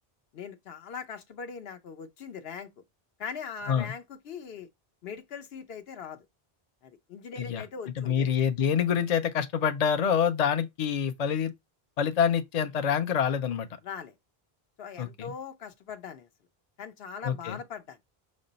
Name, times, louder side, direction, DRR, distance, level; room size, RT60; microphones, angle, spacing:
voice 1, 0.3-2.7 3.2-4.7 5.0-6.2 6.8-8.3 13.8-14.1 14.8-16.3 16.8-18.0, left 6 dB, 75° left, 1.0 m, -40 dB
voice 2, 8.0-11.5 12.0-13.7 15.0-15.3 17.2-17.6, left 7 dB, 50° left, 0.6 m, -26 dB
5.3 x 2.1 x 3.8 m
omnidirectional pair, 1.0 m